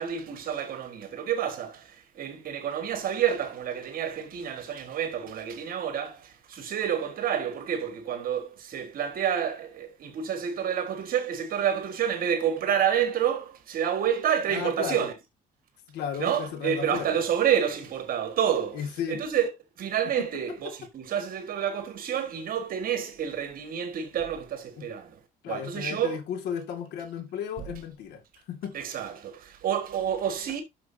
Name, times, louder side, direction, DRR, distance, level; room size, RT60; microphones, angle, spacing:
voice 1, 0.0-15.1 16.2-19.5 19.8-25.2 25.5-26.2 28.7-30.6, right 9 dB, 60° right, 1.7 m, -29 dB
voice 2, 14.5-15.1 15.9-17.2 18.7-19.2 20.2-20.7 24.8-24.9 25.4-28.2 28.5-28.8, left 8 dB, 75° left, 2.1 m, -34 dB
11.0 x 6.5 x 2.7 m
cardioid pair, 110°, 17 cm